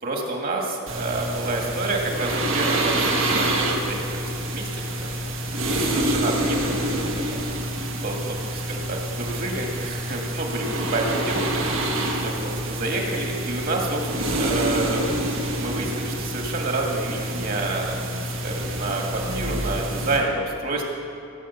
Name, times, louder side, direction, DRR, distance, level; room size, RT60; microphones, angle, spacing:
voice 1, 0.0-5.2 5.7-7.0 8.0-11.5 11.8-11.9 12.2-15.0 15.6-20.9, right 2 dB, 45° right, 0 dB, 2.1 m, -29 dB
sound 1, 0.9-20.2, right 1 dB, 75° right, 2.1 m, -27 dB
17.0 x 7.6 x 7.2 m, 2.6 s
head